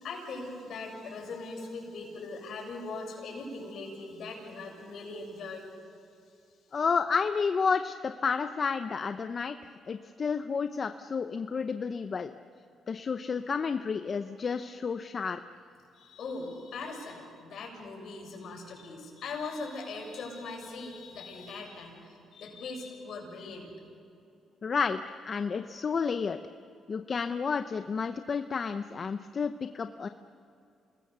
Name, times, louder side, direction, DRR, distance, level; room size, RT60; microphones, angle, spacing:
voice 1, 0.0-5.6 15.9-23.7, left 3 dB, 65° left, 0 dB, 7.1 m, -40 dB
voice 2, 6.7-9.6 9.9-12.3 12.9-15.4 24.6-26.4 26.9-30.1, left 5 dB, 45° left, 9 dB, 0.7 m, -31 dB
28.5 x 20.5 x 6.9 m, 2.6 s
cardioid pair, 90°, 0 cm